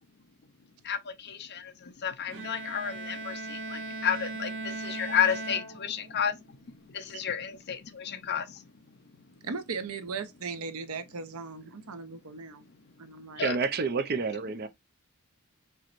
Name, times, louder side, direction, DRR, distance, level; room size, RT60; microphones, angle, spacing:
voice 1, 0.8-6.4 6.9-8.6 13.4-13.6, left 8 dB, 50° left, 0.6 m, -32 dB
Bowed string instrument, 2.3-6.3, right 3 dB, 65° right, 1.3 m, -38 dB
voice 2, 9.4-12.6 13.0-13.6, right 5 dB, 90° right, 0.7 m, -38 dB
voice 3, 13.4-14.7, right 4 dB, 50° right, 0.6 m, -29 dB
4.5 x 3.0 x 2.5 m
head